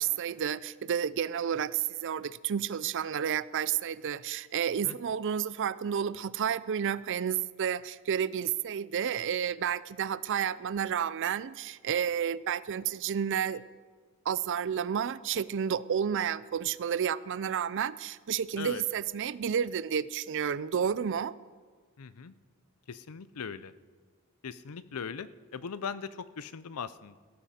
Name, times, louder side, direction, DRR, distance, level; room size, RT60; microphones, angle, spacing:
voice 1, 0.0-13.6 14.3-21.3, right 8 dB, 60° right, 18 dB, 0.4 m, -31 dB
voice 2, 22.0-22.4 22.9-23.7 24.4-27.2, left 6 dB, 85° left, 16 dB, 0.6 m, -39 dB
17.0 x 14.0 x 4.3 m, 1.5 s
head